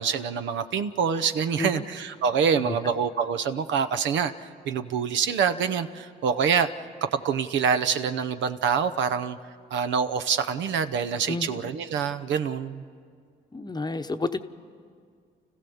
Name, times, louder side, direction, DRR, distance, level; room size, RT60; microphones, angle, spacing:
voice 1, 0.0-6.7 7.1-9.4 9.7-12.8, right 6 dB, 70° right, 10 dB, 0.9 m, -26 dB
voice 2, 11.3-11.7 13.5-14.4, left 3 dB, 20° left, 8 dB, 1.0 m, -30 dB
29.5 x 15.0 x 7.1 m, 2.1 s
supercardioid pair, 65°, 20 cm